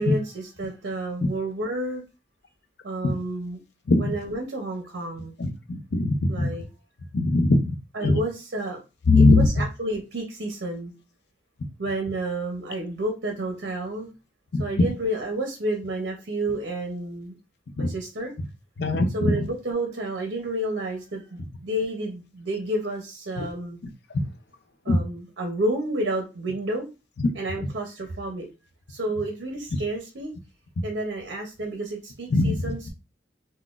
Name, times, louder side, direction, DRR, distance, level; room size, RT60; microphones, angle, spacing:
voice 1, 0.0-2.0 2.8-3.6 3.9-5.3 6.3-6.6 7.9-8.8 9.1-10.9 11.8-14.1 14.6-17.4 17.8-18.3 19.1-23.8 24.8-26.9 27.3-28.5 28.9-30.3 30.8-32.9, right 1 dB, 65° right, 3 dB, 0.6 m, -30 dB
voice 2, 5.4-6.5 7.1-7.7 8.0-8.2 9.1-9.5 14.5-14.9 17.8-17.9 18.8-19.3 24.9-25.0 32.3-32.5, left 2 dB, 60° left, 6 dB, 0.5 m, -20 dB
3.8 x 2.1 x 2.4 m, 0.30 s
head